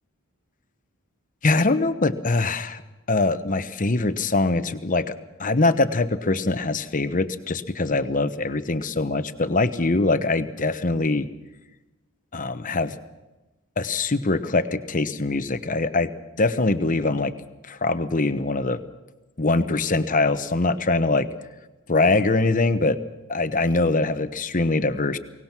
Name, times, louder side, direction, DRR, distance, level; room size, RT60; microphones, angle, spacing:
voice 1, 1.4-2.8 3.1-5.1 5.4-11.3 12.3-13.0 13.8-16.1 16.4-17.3 17.7-18.8 19.4-21.3 21.9-23.0 23.3-25.2, left 3 dB, 40° left, 11 dB, 1.0 m, -23 dB
23.0 x 19.0 x 6.1 m, 1.1 s
head